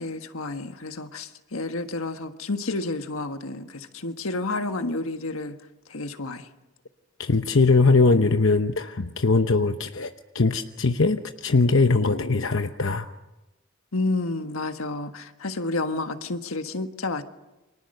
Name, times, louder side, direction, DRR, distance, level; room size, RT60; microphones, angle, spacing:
voice 1, 0.0-5.6 5.9-6.5 13.9-17.2, left 2 dB, 85° left, 1.5 m, -30 dB
voice 2, 7.2-13.1, left 3 dB, 65° left, 0.9 m, -21 dB
29.5 x 25.0 x 6.7 m
head